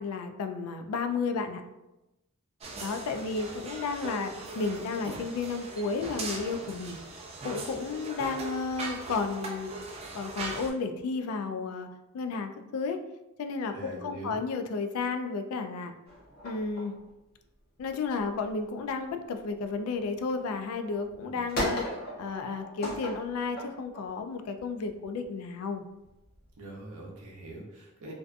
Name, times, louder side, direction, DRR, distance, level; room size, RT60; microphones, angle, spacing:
voice 1, 0.0-1.6 2.8-7.0 7.4-9.7 10.1-11.9 12.1-13.0 13.4-15.9 16.4-17.0 17.8-21.8 22.2-25.8, left 4 dB, 80° left, 7 dB, 0.3 m, -32 dB
sound 1, 2.6-10.7, right 2 dB, 30° right, 0.3 m, -40 dB
voice 2, 13.7-14.4 21.2-21.4 26.6-28.1, right 1 dB, 90° right, -2 dB, 0.6 m, -43 dB
sound 2, 16.1-20.3 20.8-25.3 26.0-27.5, equal, 45° left, 0.8 m, -38 dB
2.6 x 2.2 x 2.4 m, 0.97 s
head